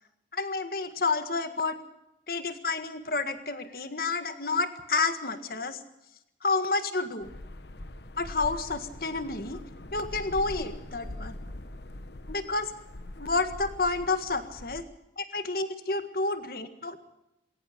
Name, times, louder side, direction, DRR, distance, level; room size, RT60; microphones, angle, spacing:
voice 1, 0.3-1.8 2.3-5.8 6.4-7.3 8.2-9.6 9.9-11.3 12.3-12.7 13.2-14.8 15.2-17.0, left 3 dB, 55° left, 9 dB, 1.7 m, -30 dB
sound 1, 7.2-14.8, left 1 dB, 75° left, 1.1 m, -42 dB
21.5 x 18.0 x 6.8 m, 0.88 s
head